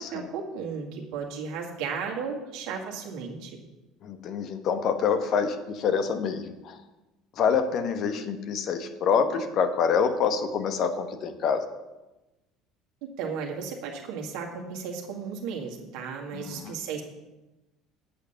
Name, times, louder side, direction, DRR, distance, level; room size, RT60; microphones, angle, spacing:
voice 1, 0.0-3.6 13.0-17.0, right 6 dB, 65° right, 0 dB, 2.0 m, -34 dB
voice 2, 4.0-6.8 7.4-11.6 16.3-16.7, left 6 dB, 50° left, 8 dB, 1.1 m, -26 dB
8.4 x 8.3 x 5.8 m, 1.0 s
hypercardioid pair, 65°, 0 cm